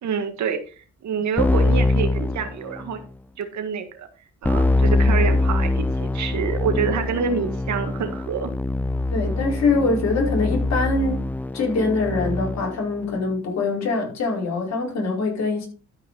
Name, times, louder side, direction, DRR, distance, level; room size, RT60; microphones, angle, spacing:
voice 1, 0.0-3.0 3.4-4.1 4.4-8.5, right 6 dB, 70° right, 1.9 m, -27 dB
Keyboard (musical), 1.4-3.1 4.4-12.8, left 2 dB, 5° left, 0.4 m, -23 dB
voice 2, 9.1-11.3 11.5-15.7, left 3 dB, 60° left, 4.8 m, -23 dB
12.5 x 5.3 x 4.1 m
cardioid pair, 90°, 30 cm